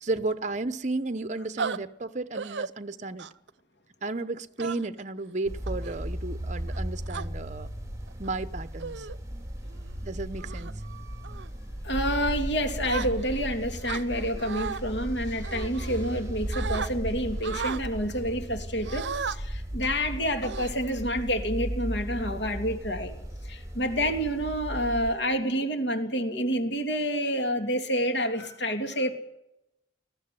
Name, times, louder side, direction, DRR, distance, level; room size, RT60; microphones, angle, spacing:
voice 1, 0.0-3.3 4.0-7.7 8.2-9.1 10.0-10.8, right 3 dB, 40° right, 0.8 m, -33 dB
sound 1, 1.6-1.8 2.3-2.7 3.2-3.5 4.6-5.0 5.7-6.0 6.7-7.3 8.1-8.3 8.8-9.2 9.6-9.9 10.4-10.7 11.2-11.5 12.8-13.5 13.8-14.8 15.4-16.2 16.5-16.9 17.4-17.8 18.8-19.4 19.8-20.0 20.4-21.1, right 5 dB, 80° right, 0.7 m, -35 dB
sound 2, 5.5-25.1, equal, 20° right, 3.1 m, -36 dB
voice 2, 11.8-23.1 23.4-29.1, equal, 80° left, 3.0 m, -28 dB
20.0 x 14.0 x 9.6 m
head